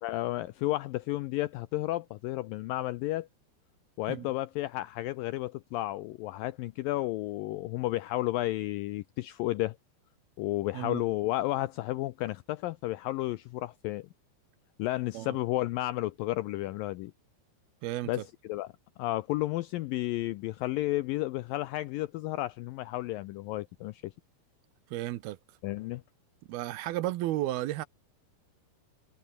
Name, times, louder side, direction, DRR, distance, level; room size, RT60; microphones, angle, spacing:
voice 1, 0.0-3.3 4.0-9.8 10.4-14.1 14.8-17.1 18.1-18.7 19.0-24.1 25.6-26.0, left 17 dB, 85° left, 2.0 m, -32 dB
voice 2, 17.8-18.2 24.9-25.4 26.5-27.9, right 15 dB, 75° right, 2.7 m, -33 dB
omnidirectional pair, 4.7 m